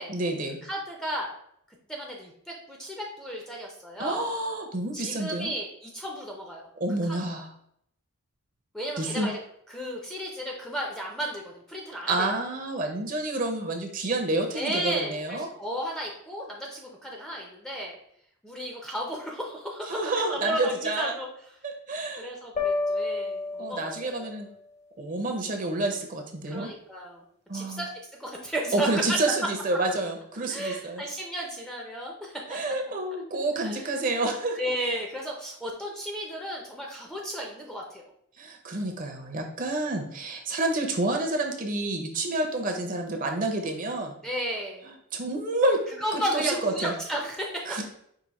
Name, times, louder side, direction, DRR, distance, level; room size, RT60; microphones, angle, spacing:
voice 1, 0.1-0.6 4.0-5.5 6.8-7.5 9.0-9.3 12.1-15.5 19.9-21.1 21.9-22.3 23.6-24.5 25.0-26.7 27.5-27.8 28.7-31.0 32.5-34.6 38.4-44.1 45.1-45.8 46.1-46.9 47.7-47.8, right 2 dB, 35° right, 2 dB, 0.6 m, -29 dB
voice 2, 0.6-1.3 1.9-4.3 4.9-6.7 7.0-7.2 8.7-9.4 9.7-12.4 14.5-18.0 18.4-21.3 22.2-24.3 26.5-27.2 27.5-27.9 28.2-29.4 30.5-32.7 33.6-33.9 34.6-38.0 44.2-44.9 46.0-47.8, right 1 dB, 5° left, -1 dB, 0.5 m, -34 dB
sound 1, 22.6-24.4, left 3 dB, 30° left, 0.8 m, -30 dB
4.8 x 2.7 x 4.0 m, 0.70 s
head